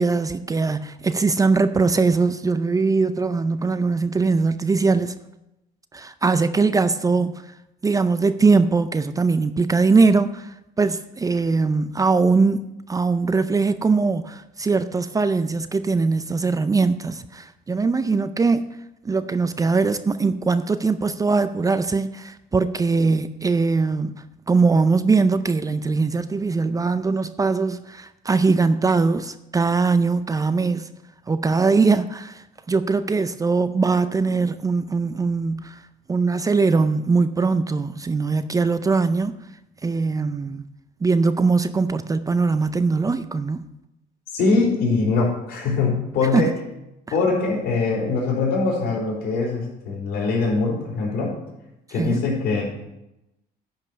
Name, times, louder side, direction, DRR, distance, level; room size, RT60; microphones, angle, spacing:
voice 1, 0.0-5.1 5.9-7.5 7.8-18.8 19.0-30.9 31.3-35.8 36.1-39.4 39.8-40.7 41.0-43.6 46.3-46.5 52.0-52.2, right 4 dB, 20° right, 0.4 m, -21 dB
voice 2, 44.3-46.5 47.1-51.3 51.9-52.6, left 3 dB, 70° left, 4.2 m, -22 dB
10.5 x 5.4 x 6.8 m
cardioid pair, 110°, 17 cm